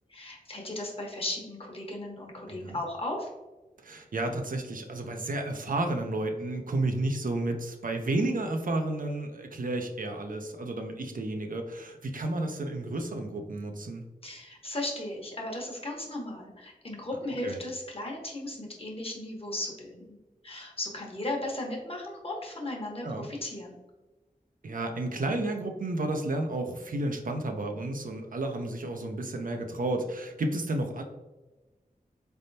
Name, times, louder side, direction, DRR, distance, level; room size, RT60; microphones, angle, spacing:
voice 1, 0.1-3.3 14.2-20.2 20.4-23.8, left 1 dB, 40° left, -1 dB, 1.1 m, -36 dB
voice 2, 2.5-2.8 3.8-14.0 17.4-17.6 23.0-23.3 24.6-31.0, right 2 dB, 65° right, 4 dB, 0.6 m, -32 dB
4.2 x 3.4 x 2.7 m, 1.1 s
wide cardioid pair, 85°, 15 cm